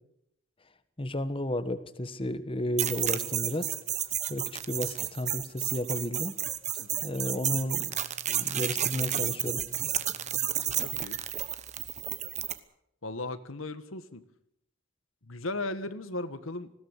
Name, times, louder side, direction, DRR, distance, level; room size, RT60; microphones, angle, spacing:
voice 1, 1.0-3.7 4.3-6.4 7.0-8.0 8.3-9.6, left 1 dB, 25° left, 12 dB, 1.3 m, -33 dB
sound 1, 2.8-12.6, right 10 dB, 35° right, 1.1 m, -31 dB
voice 2, 10.8-11.2 13.0-14.2 15.3-16.7, left 2 dB, 75° left, 12 dB, 1.5 m, -37 dB
20.0 x 16.5 x 8.2 m, 0.78 s
head